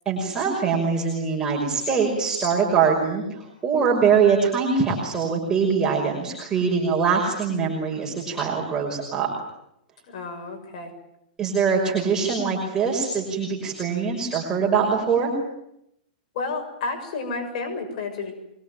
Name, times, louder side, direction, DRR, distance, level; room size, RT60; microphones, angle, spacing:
voice 1, 0.1-9.3 11.4-15.3, right 5 dB, 15° right, -2 dB, 5.7 m, -23 dB
voice 2, 10.1-10.9 16.3-18.4, left 3 dB, 55° left, 4 dB, 6.8 m, -31 dB
24.5 x 22.5 x 9.3 m, 0.79 s
hypercardioid pair, 150°, 5 cm